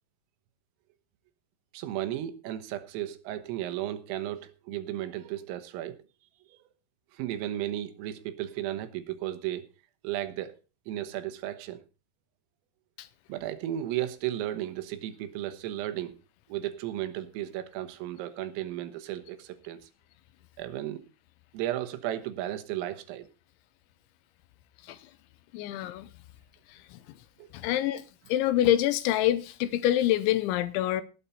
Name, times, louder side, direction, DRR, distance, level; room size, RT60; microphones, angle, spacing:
voice 1, 1.7-6.0 6.5-6.6 7.1-9.7 10.0-10.6 10.9-11.8 13.3-16.2 16.5-19.8 20.6-21.0 21.5-23.3 27.4-27.5, right 13 dB, 80° right, 3.8 m, -34 dB
voice 2, 25.5-26.1 26.7-27.0 27.5-28.0 28.3-31.0, left 13 dB, 80° left, 2.8 m, -26 dB
18.5 x 8.5 x 4.1 m
omnidirectional pair, 6.0 m